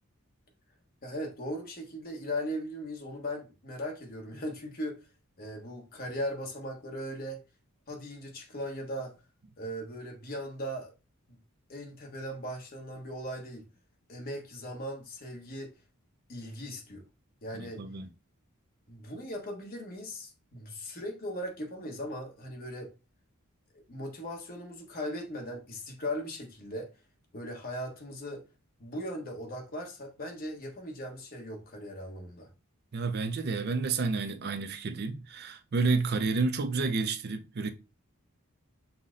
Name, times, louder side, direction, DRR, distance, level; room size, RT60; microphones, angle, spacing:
voice 1, 1.0-5.0 5.4-7.4 7.9-9.2 9.6-10.9 11.3-11.4 11.7-13.7 14.1-15.7 16.3-17.0 17.4-17.8 18.9-22.9 23.9-26.9 27.3-28.4 28.8-32.5, equal, 45° left, 1.2 m, -38 dB
voice 2, 17.5-18.1 32.9-37.7, right 4 dB, 50° right, 0.5 m, -30 dB
5.7 x 2.1 x 3.8 m
head